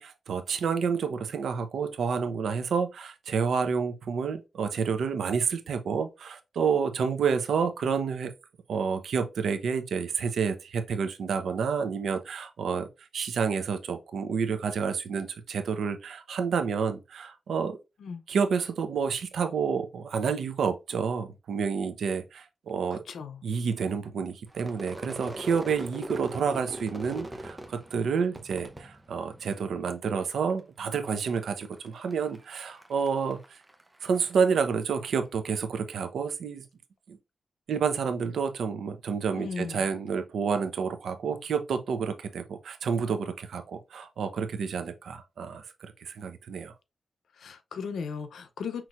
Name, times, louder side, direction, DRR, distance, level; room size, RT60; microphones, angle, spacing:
voice 1, 0.0-8.3 8.7-17.8 18.3-23.0 23.4-33.4 34.0-36.6 37.1-37.2 37.7-46.7, right 6 dB, 90° right, 0.7 m, -29 dB
voice 2, 22.9-23.4 39.3-39.9 47.4-48.9, left 6 dB, 90° left, 0.6 m, -37 dB
Crowd / Fireworks, 24.5-29.9 30.2-30.8 31.1-34.7, right 1 dB, 15° right, 0.7 m, -42 dB
5.9 x 3.0 x 2.5 m
wide cardioid pair, 125°, 0 cm